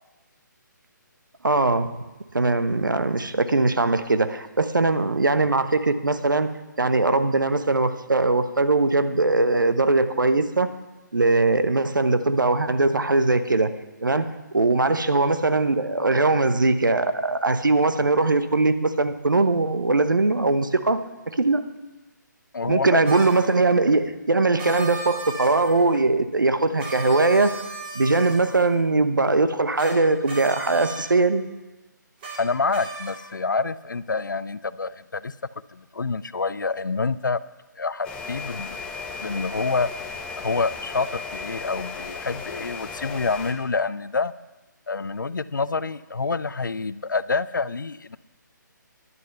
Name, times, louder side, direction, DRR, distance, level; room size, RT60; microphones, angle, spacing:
voice 1, 1.4-1.9 2.3-6.5 6.8-10.7 11.1-13.7 14.0-21.0 21.3-21.6 22.7-27.5 27.9-31.4, right 3 dB, 75° right, 11 dB, 0.9 m, -21 dB
voice 2, 22.5-23.0 32.4-35.3 35.7-37.4 37.8-38.8 39.2-39.9 40.4-44.3 44.9-48.2, left 4 dB, 75° left, 17 dB, 0.5 m, -27 dB
sound 1, 23.1-23.5 24.6-26.0 26.8-28.8 29.8-30.0 30.2-31.1 32.2-32.4 32.7-33.3, right 4 dB, 30° right, 2.8 m, -36 dB
sound 2, 38.0-43.5, left 4 dB, 10° left, 1.0 m, -35 dB
10.5 x 6.3 x 7.8 m, 1.1 s
figure-of-eight pair, 145°, 11 cm